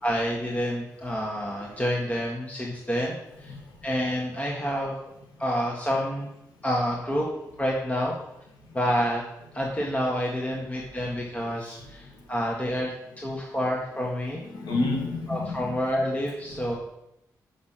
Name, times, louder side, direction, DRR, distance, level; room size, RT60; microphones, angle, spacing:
voice 1, 0.0-3.5 3.8-5.0 5.4-6.3 6.6-7.3 7.6-8.2 8.7-9.2 9.5-14.4 15.3-16.7, equal, 20° left, -2 dB, 1.6 m, -28 dB
voice 2, 14.5-15.8, left 3 dB, 85° left, 0 dB, 1.9 m, -29 dB
6.2 x 6.1 x 5.8 m, 0.87 s
cardioid pair, 60°, 7 cm